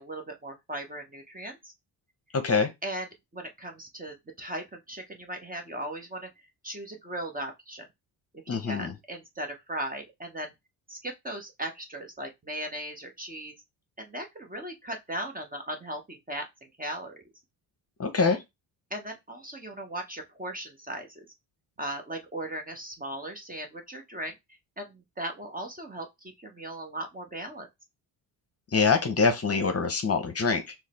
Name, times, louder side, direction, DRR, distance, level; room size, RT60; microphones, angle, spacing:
voice 1, 0.0-1.7 2.8-6.3 6.6-7.9 8.5-10.5 10.9-13.5 14.0-17.2 18.9-21.3 21.8-24.4 24.8-27.7, right 1 dB, 20° right, 0.9 m, -38 dB
voice 2, 2.3-2.7 8.5-8.9 18.0-18.4 28.7-30.7, left 4 dB, 30° left, 0.9 m, -24 dB
4.7 x 2.1 x 4.2 m
cardioid pair, 95°, 45 cm